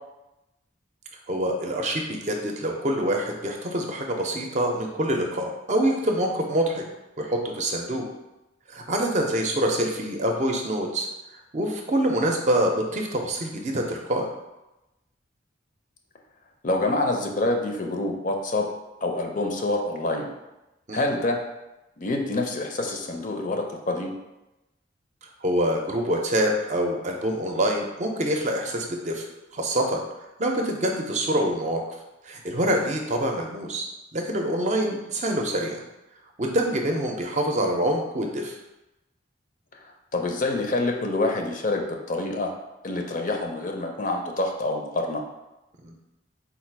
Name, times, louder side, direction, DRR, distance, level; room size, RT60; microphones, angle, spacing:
voice 1, 1.3-6.8 7.2-8.0 8.7-11.1 11.5-14.3 20.9-21.0 25.4-29.2 29.5-30.0 30.4-31.8 32.3-33.9 34.1-35.8 36.4-38.6 45.8-45.9, right 1 dB, 40° right, 2 dB, 0.5 m, -25 dB
voice 2, 16.6-18.7 19.0-20.3 20.9-21.4 22.0-24.1 40.1-42.5 42.8-45.2, left 2 dB, 45° left, 2 dB, 0.5 m, -26 dB
4.0 x 2.4 x 4.5 m, 0.97 s
head